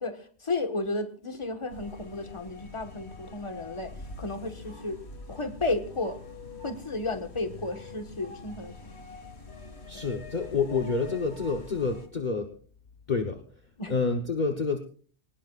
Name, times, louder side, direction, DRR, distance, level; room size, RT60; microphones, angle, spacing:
voice 1, 0.0-3.9 4.2-5.0 5.3-6.2 6.6-9.0 9.9-10.0 13.8-13.9, left 3 dB, 25° left, 7 dB, 1.5 m, -33 dB
sound 1, 1.7-12.1, left 3 dB, 70° left, 2.1 m, -45 dB
voice 2, 9.9-12.5 13.1-13.4 13.9-14.8, left 4 dB, 45° left, 5 dB, 1.2 m, -28 dB
21.5 x 19.0 x 2.5 m, 0.43 s
omnidirectional pair, 1.2 m